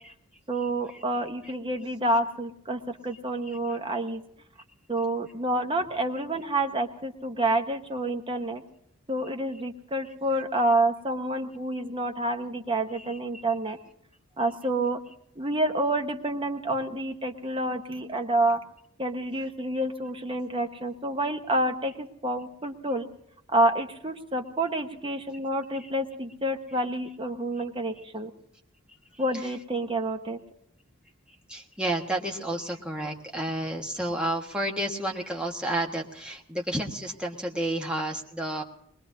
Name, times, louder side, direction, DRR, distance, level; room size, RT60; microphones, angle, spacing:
voice 1, 0.5-4.2 4.9-8.6 9.1-13.8 14.4-15.0 15.4-18.6 19.0-23.1 23.5-28.3 29.2-30.4, right 1 dB, 25° right, 5 dB, 0.9 m, -28 dB
voice 2, 31.5-38.6, right 1 dB, 5° right, 0 dB, 1.4 m, -31 dB
22.0 x 20.0 x 2.8 m, 0.72 s
head